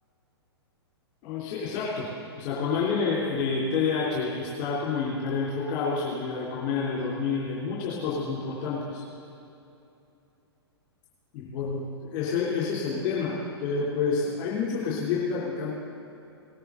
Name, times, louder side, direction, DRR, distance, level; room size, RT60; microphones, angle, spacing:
voice 1, 1.2-2.1 2.4-9.0 11.3-13.3 13.6-15.7, left 5 dB, 35° left, -8 dB, 3.7 m, -28 dB
19.0 x 9.9 x 4.1 m, 2.7 s
figure-of-eight pair, 110°, 14 cm